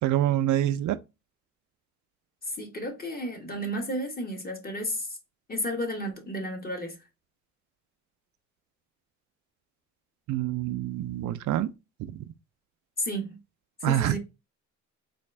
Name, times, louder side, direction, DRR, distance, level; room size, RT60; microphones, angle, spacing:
voice 1, 0.0-1.0 10.3-11.7 12.1-12.3 13.8-14.2, right 12 dB, 75° right, 0.5 m, -26 dB
voice 2, 2.6-5.1 5.5-7.0 13.0-13.4 13.8-14.2, equal, 30° left, 1.3 m, -32 dB
4.0 x 2.5 x 3.2 m
cardioid pair, 90°, 30 cm